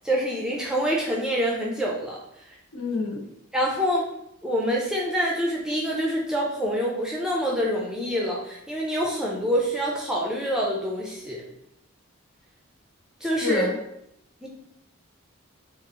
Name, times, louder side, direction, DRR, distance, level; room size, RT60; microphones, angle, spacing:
voice 1, 0.0-2.2 2.5-2.6 3.5-4.1 4.4-11.4 13.2-13.7 14.4-14.5, equal, 5° right, -3 dB, 0.4 m, -26 dB
voice 2, 2.7-3.2 13.4-13.8, left 3 dB, 80° left, -3 dB, 0.9 m, -26 dB
3.6 x 2.0 x 2.9 m, 0.78 s
head